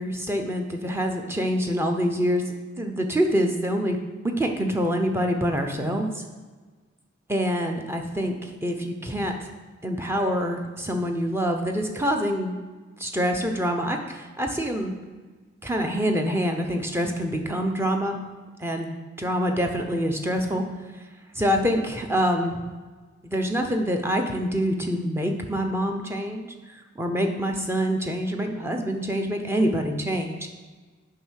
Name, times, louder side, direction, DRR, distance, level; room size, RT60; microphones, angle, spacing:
voice 1, 0.0-2.4 2.8-4.0 4.2-6.2 7.3-9.3 9.8-12.6 13.0-14.9 15.6-18.2 18.6-20.7 21.3-22.6 23.2-30.5, equal, 10° right, 4 dB, 0.8 m, -26 dB
7.7 x 5.6 x 6.4 m, 1.4 s
head